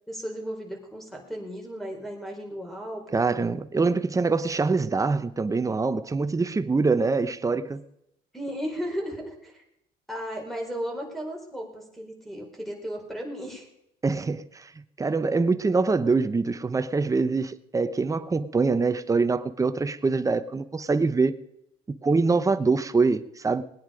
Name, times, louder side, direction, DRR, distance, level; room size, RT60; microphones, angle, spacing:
voice 1, 0.1-3.2 8.3-9.6 10.1-13.7, equal, ahead, 4.5 m, -35 dB
voice 2, 3.1-7.8 14.0-14.7 15.0-21.4 22.0-23.6, right 4 dB, 20° right, 0.9 m, -24 dB
20.5 x 9.6 x 5.2 m
cardioid pair, 110°, 17 cm